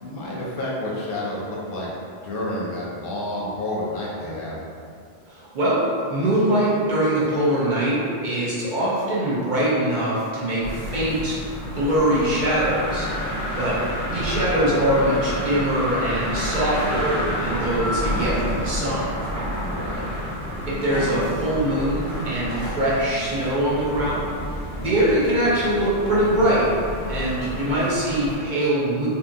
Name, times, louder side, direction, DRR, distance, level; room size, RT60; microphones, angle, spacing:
voice 1, 0.0-1.9 2.2-4.6 19.6-20.0, left 1 dB, 65° left, -5 dB, 0.7 m, -29 dB
voice 2, 5.3-8.0 8.2-13.8 14.1-19.1 20.7-26.7 27.1-29.1, right 1 dB, 55° right, -8 dB, 0.7 m, -23 dB
sound 1, 10.6-28.4, equal, 85° right, 1.1 m, -29 dB
2.6 x 2.6 x 2.5 m, 2.3 s
omnidirectional pair, 1.1 m